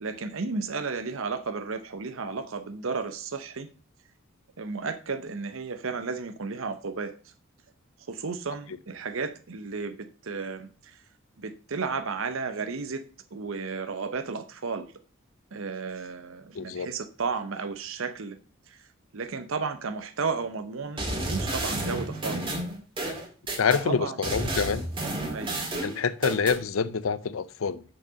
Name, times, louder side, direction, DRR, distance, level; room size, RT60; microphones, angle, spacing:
voice 1, 0.0-3.7 4.6-7.1 8.1-11.0 11.4-13.0 13.3-14.9 15.5-18.4 18.7-18.8 19.1-22.6 23.8-24.2 25.3-25.6, right 4 dB, 70° right, 0.7 m, -33 dB
voice 2, 16.5-16.9 23.6-24.9 25.5-27.8, left 5 dB, 75° left, 0.5 m, -27 dB
sound 1, 21.0-23.8 24.2-26.6, right 1 dB, 25° right, 2.1 m, -31 dB
6.6 x 5.9 x 5.1 m
head